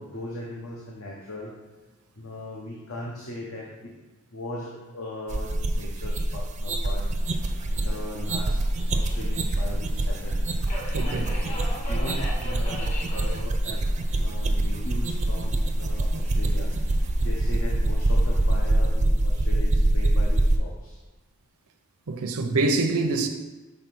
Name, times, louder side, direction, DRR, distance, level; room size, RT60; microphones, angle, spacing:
voice 1, 0.0-1.5 2.2-3.9 4.3-7.1 7.7-10.4 11.1-11.6 11.9-13.9 14.1-16.7 17.2-21.0, left 1 dB, 75° left, 1.0 m, -38 dB
sound 1, 5.3-20.6, right 1 dB, 30° right, 0.4 m, -24 dB
Subway metro underground, 7.2-18.7, left 1 dB, 30° left, 1.3 m, -42 dB
voice 2, 10.9-11.3 22.1-23.3, right 3 dB, 85° right, 0.6 m, -25 dB
5.5 x 4.1 x 6.0 m
head